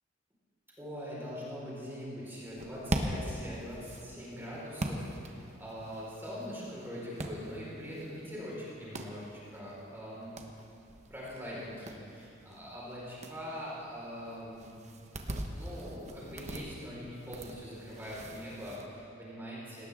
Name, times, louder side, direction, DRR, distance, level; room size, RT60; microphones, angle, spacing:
voice 1, 0.8-10.3 11.1-14.7 15.5-19.9, equal, 10° right, -7 dB, 4.8 m, -42 dB
sound 1, 2.5-18.9, right 1 dB, 35° right, 1.1 m, -42 dB
18.5 x 18.0 x 3.7 m, 2.6 s
head